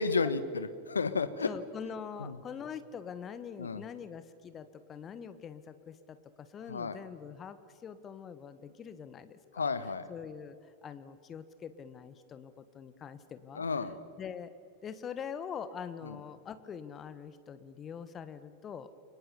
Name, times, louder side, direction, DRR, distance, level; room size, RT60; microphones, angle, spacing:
voice 1, 0.0-1.5 1.8-1.9 2.2-2.4 3.6-3.8 6.7-7.0 9.5-10.1 13.5-14.0 16.0-16.2, left 4 dB, 75° left, 12 dB, 1.3 m, -32 dB
voice 2, 1.4-9.7 10.1-10.6 10.8-13.6 14.2-14.5 14.8-18.9, left 7 dB, 25° left, 12 dB, 1.3 m, -44 dB
30.0 x 23.5 x 7.1 m, 2.4 s
figure-of-eight pair, 90°, 0 cm